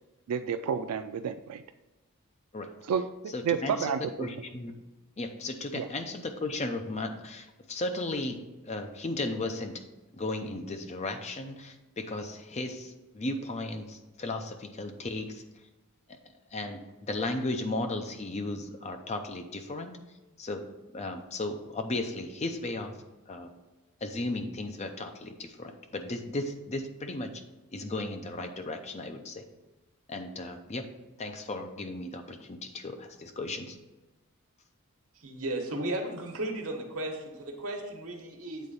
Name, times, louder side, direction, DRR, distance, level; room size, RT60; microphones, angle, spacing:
voice 1, 0.3-1.6 2.9-4.3 5.7-5.9, right 7 dB, 90° right, 10 dB, 0.3 m, -30 dB
voice 2, 3.3-4.7 5.2-9.8 10.1-15.4 16.1-16.2 16.5-19.9 20.4-22.9 23.3-23.5 24.0-27.4 27.7-29.5 30.1-30.9 31.2-33.8, left 2 dB, 30° left, 6 dB, 0.6 m, -35 dB
voice 3, 35.1-38.7, right 1 dB, 70° right, 2 dB, 1.3 m, -35 dB
8.3 x 3.9 x 5.4 m, 1.1 s
head